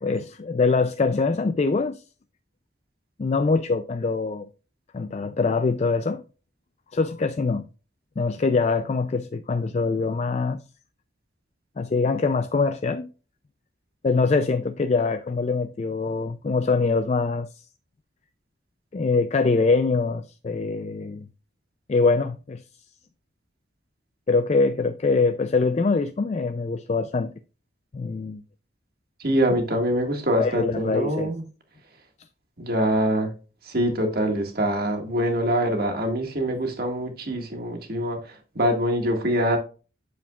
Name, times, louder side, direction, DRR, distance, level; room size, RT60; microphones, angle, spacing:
voice 1, 0.0-2.0 3.2-4.5 4.9-6.2 6.9-7.7 8.2-10.6 11.8-13.1 14.0-17.6 18.9-21.3 21.9-22.6 24.3-27.3 27.9-28.4 29.5-29.6 30.4-31.3, left 4 dB, 35° left, 0.3 m, -23 dB
voice 2, 29.2-31.4 32.6-33.3 33.6-39.6, equal, 50° right, 1.7 m, -24 dB
8.5 x 7.0 x 2.3 m
head